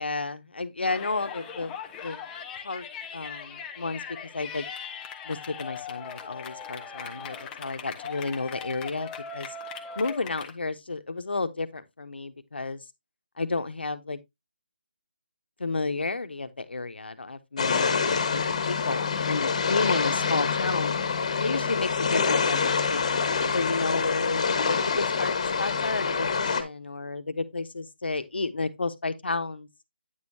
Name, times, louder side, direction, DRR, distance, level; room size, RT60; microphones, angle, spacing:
voice 1, 0.0-2.2 2.6-2.9 3.1-4.0 4.3-4.7 5.2-9.5 10.0-12.9 13.4-14.2 15.6-21.0 21.4-23.0 23.5-29.7, left 3 dB, 80° left, 1.1 m, -32 dB
Yell, 0.8-10.5, left 6 dB, 10° left, 0.5 m, -40 dB
sound 1, 17.6-26.6, left 5 dB, 35° left, 1.4 m, -26 dB
9.3 x 6.5 x 2.8 m
figure-of-eight pair, 170°, 6 cm